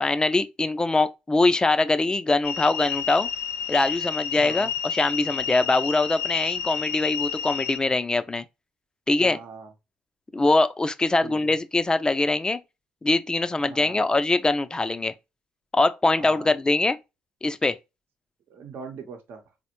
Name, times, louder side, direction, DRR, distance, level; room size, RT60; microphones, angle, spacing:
voice 1, 0.0-3.3 3.7-8.5 9.1-9.4 10.3-12.6 13.0-15.1 15.7-17.0 17.4-17.8, left 2 dB, 20° left, 0.4 m, -23 dB
sound 1, 2.4-7.8, left 8 dB, 85° left, 0.5 m, -30 dB
voice 2, 4.3-4.7 9.2-9.7 11.2-11.5 13.6-14.0 16.1-16.5 18.5-19.4, right 5 dB, 65° right, 0.8 m, -41 dB
4.0 x 2.1 x 3.0 m
supercardioid pair, 65°, 4 cm